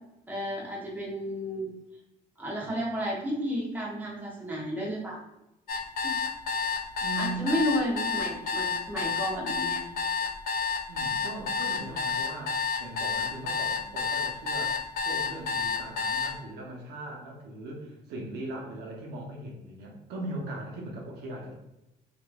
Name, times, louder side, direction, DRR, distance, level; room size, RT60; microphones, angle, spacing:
voice 1, 0.3-1.7 2.4-5.2 6.0-6.1 7.2-9.8, equal, 10° right, -4 dB, 0.8 m, -32 dB
sound 1, 5.7-16.3, left 5 dB, 65° left, 0.5 m, -29 dB
voice 2, 7.0-7.5 10.9-21.5, right 2 dB, 80° right, -1 dB, 0.7 m, -39 dB
2.9 x 2.4 x 2.2 m, 0.90 s
cardioid pair, 110°, 17 cm